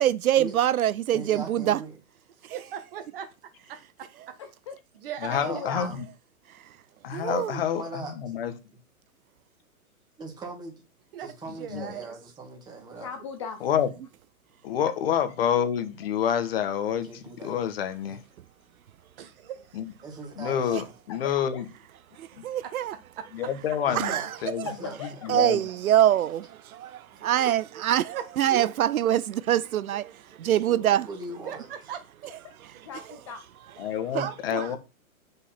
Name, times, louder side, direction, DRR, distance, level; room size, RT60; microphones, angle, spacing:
voice 1, 0.0-1.8 2.4-2.6 7.1-7.5 20.7-20.8 22.2-22.9 23.9-24.3 24.6-24.7 25.3-31.1 34.1-34.3, right 11 dB, 75° right, 0.7 m, -24 dB
voice 2, 1.1-2.0 5.4-6.0 7.8-8.2 10.2-10.8 11.2-13.1 17.1-17.5 18.1-18.2 20.0-20.9 23.8-24.3 24.6-25.0 27.1-27.2 31.0-31.7 34.7-34.8, right 3 dB, 10° right, 2.0 m, -39 dB
voice 3, 2.5-3.3 3.7-4.4 5.0-5.6 11.1-12.1 13.4-13.5 19.2-19.8 22.6-23.3 27.4-27.6 28.1-28.7 31.5-32.0 34.1-34.8, right 9 dB, 40° right, 1.8 m, -38 dB
voice 4, 4.4-4.8 5.3-5.9 13.0-13.6 21.1-21.6 24.7-25.1 32.8-33.4, left 6 dB, 20° left, 0.6 m, -38 dB
voice 5, 5.2-6.1 7.0-8.5 11.7-11.9 13.6-13.9 14.6-18.2 19.7-19.9 20.4-21.7 22.4-22.5 23.3-24.1 24.4-24.7 25.0-25.6 33.8-34.8, left 9 dB, 40° left, 1.5 m, -28 dB
8.1 x 5.6 x 5.9 m
hypercardioid pair, 165°, 43 cm